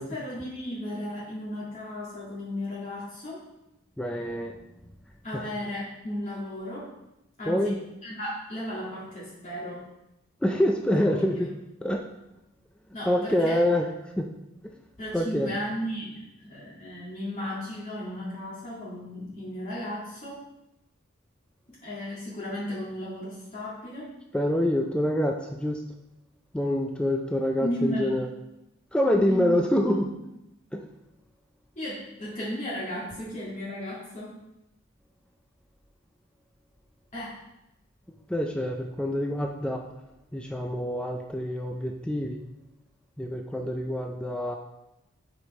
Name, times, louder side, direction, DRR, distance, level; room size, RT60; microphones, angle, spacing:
voice 1, 0.0-3.4 5.2-6.9 7.4-7.8 8.0-9.8 10.9-11.4 12.9-13.6 15.0-20.4 21.8-24.1 27.6-28.1 29.1-29.6 30.0-30.1 31.8-34.3 37.1-37.4, equal, 35° left, -8 dB, 2.0 m, -35 dB
voice 2, 4.0-4.6 5.3-5.5 7.5-7.8 10.4-11.5 11.8-12.0 13.1-13.9 14.2-14.3 15.1-15.5 24.3-25.8 26.5-28.3 28.9-30.1 30.7-30.9 38.3-39.8 40.3-42.4 43.2-44.6, left 1 dB, 5° left, 2 dB, 0.4 m, -26 dB
7.8 x 5.0 x 4.2 m, 0.91 s
head